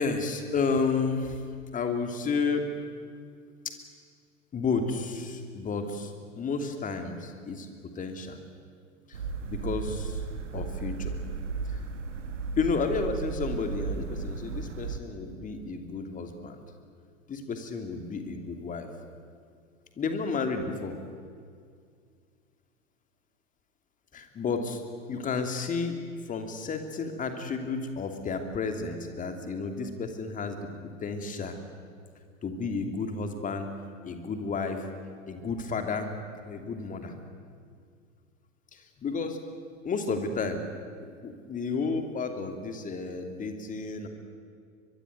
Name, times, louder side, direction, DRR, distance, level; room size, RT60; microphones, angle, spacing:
voice 1, 0.0-1.4 1.7-2.7 4.5-7.7 7.9-8.4 9.1-9.2 9.4-10.2 10.5-11.2 11.7-11.8 12.6-16.6 17.3-18.9 20.0-20.9 24.1-24.8 25.1-25.9 26.3-31.6 32.4-33.7 34.0-34.8 35.3-36.1 36.4-37.1 38.7-39.4 39.8-40.6 41.1-44.1, left 4 dB, 20° left, 6 dB, 2.9 m, -31 dB
sound 1, 9.1-15.0, right 5 dB, 70° right, 2.0 m, -35 dB
23.0 x 22.5 x 9.6 m, 2.1 s
figure-of-eight pair, 95°, 39 cm